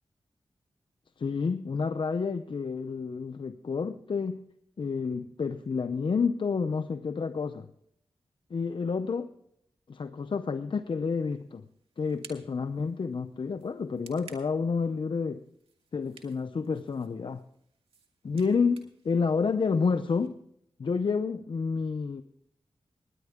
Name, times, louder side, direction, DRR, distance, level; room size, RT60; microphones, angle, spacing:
voice 1, 1.2-4.4 4.8-7.7 8.5-9.3 9.9-11.6 12.0-15.4 15.9-17.4 18.2-20.4 20.8-22.2, left 5 dB, 60° left, 10 dB, 0.6 m, -29 dB
sound 1, 11.1-20.3, right 5 dB, 85° right, 2.0 m, -57 dB
19.0 x 10.0 x 3.6 m, 0.73 s
cardioid pair, 55°, 10 cm